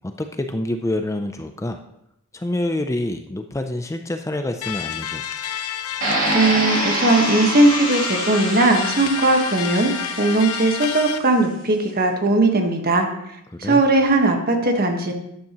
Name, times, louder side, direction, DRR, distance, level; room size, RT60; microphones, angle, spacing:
voice 1, 0.0-1.8 2.3-5.2 13.5-13.8, left 1 dB, 15° left, 6 dB, 0.4 m, -27 dB
sound 1, 4.6-11.2, left 9 dB, 85° left, 0.7 m, -29 dB
sound 2, 6.0-11.0, right 2 dB, 65° right, 2.9 m, -26 dB
voice 2, 6.3-9.9 10.2-13.1 13.6-15.1, right 2 dB, 45° right, 4 dB, 1.4 m, -18 dB
12.5 x 9.2 x 3.0 m, 0.78 s
head